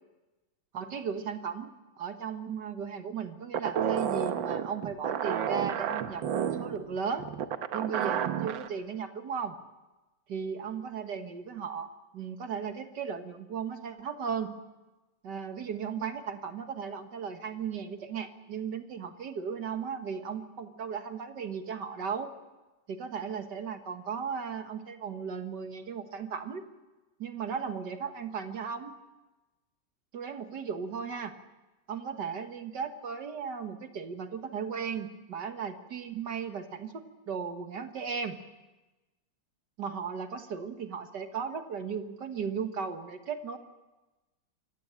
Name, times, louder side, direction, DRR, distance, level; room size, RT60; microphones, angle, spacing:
voice 1, 0.7-7.3 7.7-9.6 10.3-14.5 15.2-22.3 22.9-26.6 27.2-28.9 30.1-31.4 31.9-38.4 39.8-43.6, right 6 dB, 65° right, 8 dB, 2.0 m, -36 dB
sound 1, 3.5-8.7, right 9 dB, 90° right, 1.7 m, -31 dB
27.0 x 15.5 x 8.8 m, 1.1 s
omnidirectional pair, 2.0 m